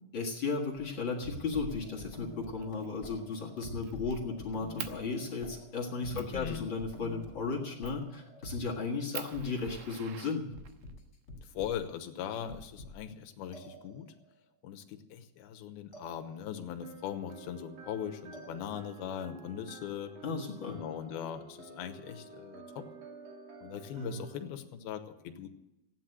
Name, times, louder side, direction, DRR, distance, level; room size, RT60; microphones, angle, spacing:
voice 1, 0.1-10.5 20.2-20.8 23.9-24.1, left 4 dB, 50° left, -1 dB, 1.5 m, -35 dB
sound 1, 0.8-8.7 9.3-9.8 10.5-11.9 12.3-13.1 13.5-14.3 15.9-16.7 18.3-19.1, equal, 30° left, 2.2 m, -48 dB
Fire, 2.6-2.9 3.3-4.2 4.8-5.0 5.6-5.7 6.2-6.4 7.8-8.1 8.6-8.7 9.1-10.9 12.0-12.9, right 12 dB, 85° right, 3.0 m, -45 dB
voice 2, 6.1-6.7 11.4-14.1 14.6-20.1 20.7-22.9 23.6-25.5, left 9 dB, 75° left, 8 dB, 2.9 m, -40 dB
sound 2, 16.8-24.4, right 4 dB, 65° right, 4.2 m, -51 dB
15.5 x 9.7 x 7.7 m, 0.91 s
omnidirectional pair, 4.7 m